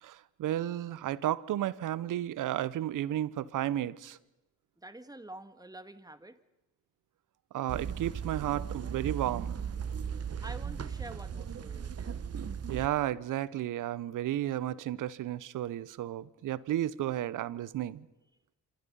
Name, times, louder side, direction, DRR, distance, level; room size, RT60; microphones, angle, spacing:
voice 1, 0.0-4.2 7.5-9.6 12.7-18.1, right 12 dB, 80° right, 0.9 m, -33 dB
voice 2, 4.8-6.4 10.0-12.1, right 1 dB, 10° right, 2.0 m, -48 dB
sound 1, 7.7-12.9, right 7 dB, 50° right, 1.3 m, -37 dB
27.0 x 26.5 x 5.6 m
supercardioid pair, 60°, 31 cm